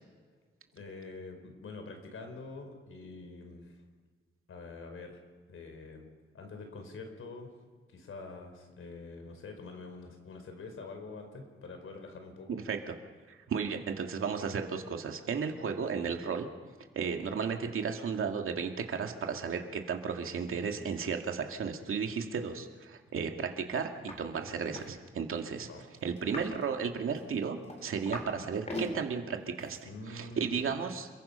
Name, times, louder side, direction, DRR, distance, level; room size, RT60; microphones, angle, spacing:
voice 1, 0.7-3.8 4.5-5.2 5.5-6.1 6.3-7.5 7.9-12.6 25.6-25.8 29.8-30.7, left 3 dB, 80° left, 5 dB, 4.8 m, -45 dB
voice 2, 12.5-13.0 13.3-16.5 17.0-25.7 26.0-31.1, right 6 dB, 85° right, 4 dB, 2.3 m, -34 dB
sound 1, 24.1-24.2 24.5-24.9 26.2-26.6 27.2-28.3 28.6-28.9 29.6-29.8, left 1 dB, 30° left, 3.8 m, -40 dB
29.0 x 22.5 x 5.7 m, 1.5 s
wide cardioid pair, 165°, 21 cm